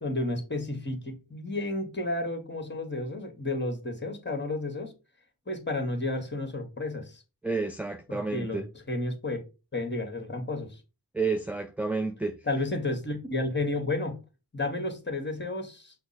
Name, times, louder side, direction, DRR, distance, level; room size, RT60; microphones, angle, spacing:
voice 1, 0.0-4.9 5.5-7.2 8.1-8.6 8.9-9.4 9.7-10.8 12.5-14.2 14.5-15.9, left 2 dB, 25° left, 1.6 m, -32 dB
voice 2, 7.4-8.7 11.1-12.4, right 3 dB, 5° right, 0.4 m, -30 dB
5.8 x 2.1 x 4.1 m
cardioid pair, 45°, 40 cm